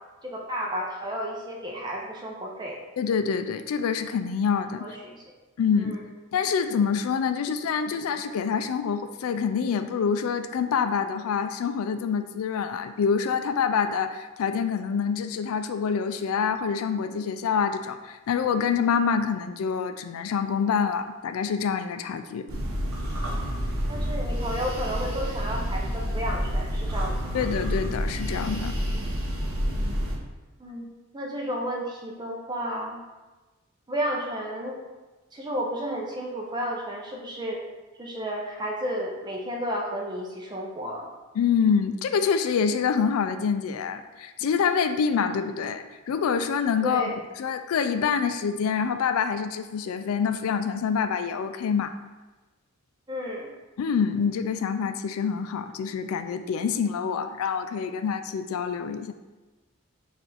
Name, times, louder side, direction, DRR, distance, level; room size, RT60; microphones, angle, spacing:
voice 1, 0.2-2.8 4.8-5.2 5.8-6.0 23.9-27.5 30.6-33.0 33.9-34.8 35.3-37.6 38.0-41.1 46.8-47.2 53.1-53.5, equal, 20° right, -1 dB, 0.5 m, -32 dB
voice 2, 3.0-4.8 5.6-6.0 6.3-22.5 27.3-28.8 41.4-47.1 47.4-51.9 53.8-59.1, left 6 dB, 70° left, 9 dB, 0.3 m, -26 dB
sound 1, 22.5-30.2, equal, 70° right, 0.8 m, -29 dB
4.4 x 2.5 x 4.1 m, 1.2 s
head